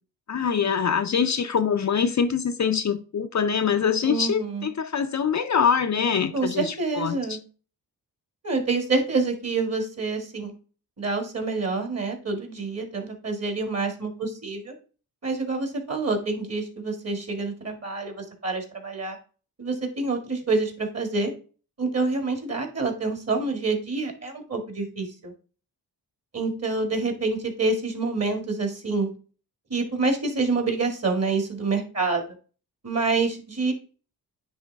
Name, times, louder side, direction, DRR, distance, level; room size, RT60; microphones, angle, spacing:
voice 1, 0.3-7.4, left 7 dB, 45° left, 0.6 m, -24 dB
voice 2, 4.0-4.7 6.3-7.4 8.4-10.5 11.0-14.7 15.2-19.2 19.6-21.3 21.8-25.3 26.3-29.1 29.7-32.2 32.8-33.7, right 3 dB, 40° right, 2.2 m, -27 dB
9.5 x 3.2 x 3.5 m
cardioid pair, 65°, 40 cm